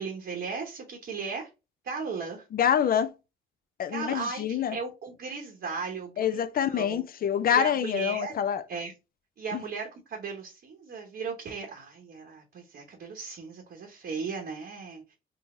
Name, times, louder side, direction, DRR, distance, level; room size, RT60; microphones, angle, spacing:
voice 1, 0.0-1.5 1.8-2.4 3.9-7.0 7.5-8.3 8.7-8.9 9.4-15.1, right 5 dB, 55° right, 0.9 m, -36 dB
voice 2, 2.5-3.1 3.8-4.8 6.2-8.6 9.5-9.6, left 9 dB, 50° left, 0.4 m, -26 dB
3.8 x 2.0 x 3.6 m
cardioid pair, 90°, 20 cm